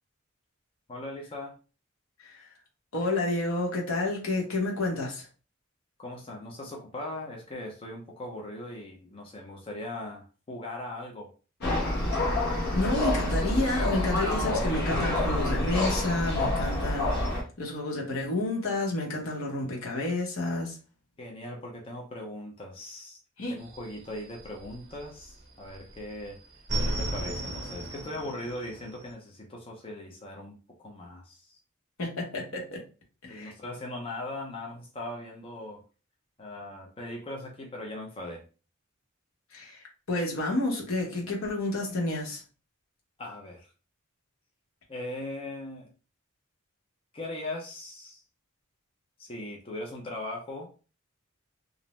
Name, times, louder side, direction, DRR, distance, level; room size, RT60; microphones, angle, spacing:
voice 1, 0.9-1.6 6.0-11.3 14.1-14.2 21.2-23.2 23.5-26.4 26.9-31.6 33.3-35.8 36.4-38.4 43.2-43.7 44.9-45.9 47.1-48.2 49.2-50.7, left 1 dB, 25° left, 0 dB, 0.5 m, -39 dB
voice 2, 2.9-5.3 12.7-17.1 17.6-20.8 23.4-23.6 32.0-32.8 33.2-33.5 39.5-42.4, left 2 dB, 80° left, -1 dB, 0.9 m, -30 dB
sound 1, 11.6-17.4, left 1 dB, 50° left, 1.0 m, -27 dB
sound 2, 23.6-25.3 25.6-29.1, right 1 dB, 55° right, 0.6 m, -34 dB
2.5 x 2.0 x 3.0 m, 0.35 s
head